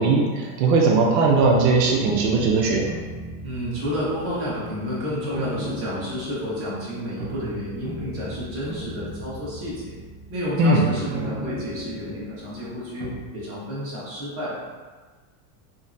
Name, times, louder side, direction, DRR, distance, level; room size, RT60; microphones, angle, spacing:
voice 1, 0.0-2.9 10.6-10.9, right 3 dB, 85° right, -1 dB, 0.7 m, -19 dB
sound 1, 0.7-13.2, right 2 dB, 50° right, 0.7 m, -37 dB
voice 2, 3.4-9.9 10.3-14.6, equal, 25° right, -8 dB, 1.1 m, -30 dB
3.7 x 2.2 x 2.6 m, 1.4 s
supercardioid pair, 150°, 48 cm